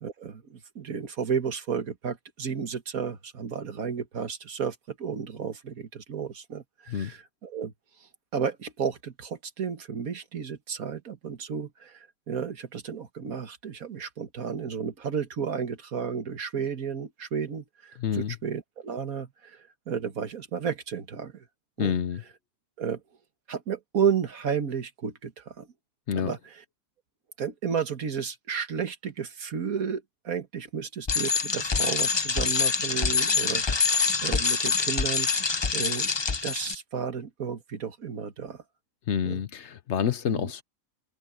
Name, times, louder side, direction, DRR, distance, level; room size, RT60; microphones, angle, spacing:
voice 1, 0.0-7.7 8.3-12.0 12.3-21.4 21.8-22.0 22.8-23.0 23.5-25.7 26.1-26.4 27.4-35.3 35.7-36.1 36.4-38.6 39.2-39.4 40.3-40.5, right 7 dB, 80° right, 2.0 m, -32 dB
voice 2, 18.0-18.4 21.8-22.2 26.1-26.3 39.1-40.6, left 8 dB, 60° left, 1.0 m, -28 dB
Bicycle, 31.1-36.7, left 5 dB, 30° left, 0.5 m, -25 dB
omnidirectional pair, 1.5 m